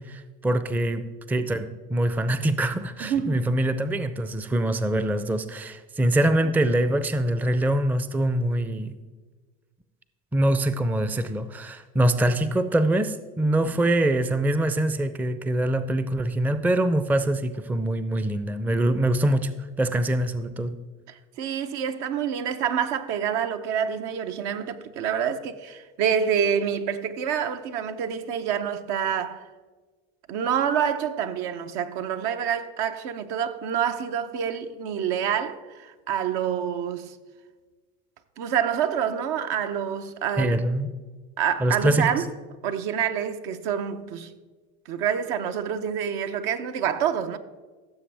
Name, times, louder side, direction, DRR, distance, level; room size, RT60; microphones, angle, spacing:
voice 1, 0.0-8.9 10.3-19.5 19.8-20.7 40.4-40.9 41.6-42.1, right 1 dB, 5° right, 0.4 m, -24 dB
voice 2, 3.0-3.5 13.7-13.8 21.1-29.5 30.3-37.2 38.4-40.6 41.4-42.3 42.6-44.3 44.9-47.4, right 8 dB, 70° right, 0.8 m, -27 dB
15.5 x 7.0 x 3.4 m
hypercardioid pair, 80°, 38 cm